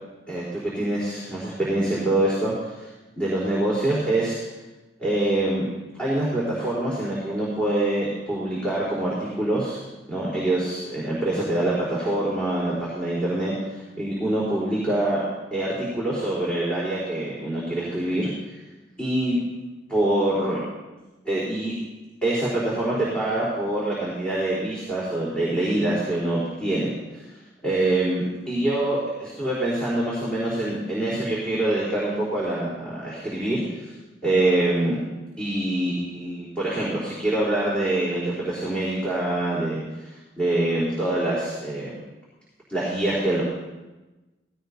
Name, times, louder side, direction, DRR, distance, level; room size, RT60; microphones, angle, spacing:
voice 1, 0.3-2.9 3.2-4.4 5.0-5.7 6.0-15.2 15.5-18.3 19.0-19.4 19.9-20.6 21.3-21.7 22.2-26.9 27.6-33.9 34.2-35.0 35.4-41.9 42.7-43.4, right 1 dB, 5° left, -8 dB, 3.8 m, -25 dB
18.5 x 16.5 x 2.8 m, 1.1 s
head